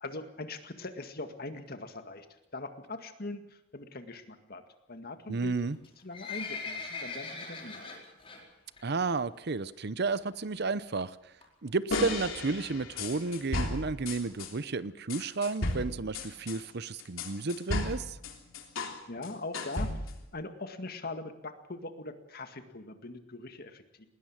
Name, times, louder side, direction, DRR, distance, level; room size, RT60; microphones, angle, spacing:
voice 1, 0.0-4.6 4.9-5.6 6.0-8.0 19.1-19.9 20.3-24.1, left 2 dB, 50° left, 7 dB, 2.0 m, -41 dB
voice 2, 5.3-5.8 8.8-11.1 11.6-18.2, right 3 dB, 55° right, 16 dB, 0.8 m, -32 dB
Livestock farm animals working animals, 5.7-8.4 8.8-9.0 9.3-9.4 10.1-10.2 10.5-10.6 10.8-10.9 11.4-11.7 12.3-12.4 12.6-12.7 12.8-12.9 13.2-13.3 13.7-13.8 14.3-14.4 14.8-14.9, left 4 dB, 30° left, 4.6 m, -40 dB
sound 1, 11.9-14.5 15.1-19.0 19.2-20.3, left 2 dB, 85° left, 3.4 m, -34 dB
20.0 x 20.0 x 7.4 m, 0.86 s
head